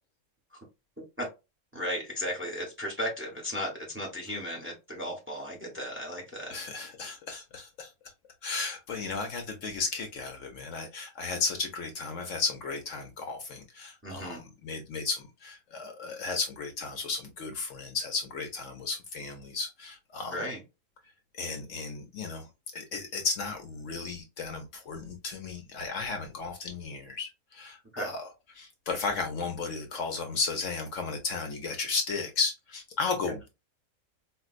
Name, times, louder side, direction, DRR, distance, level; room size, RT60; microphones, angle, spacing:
voice 1, 1.7-6.5 14.0-14.4 20.3-20.6 27.9-28.1 33.2-33.3, equal, 10° right, 0.9 m, -35 dB
voice 2, 6.5-7.9 8.4-20.5 21.4-22.5 22.7-28.3 28.5-33.5, left 4 dB, 65° left, 0.9 m, -34 dB
4.4 x 2.2 x 2.4 m
omnidirectional pair, 1.5 m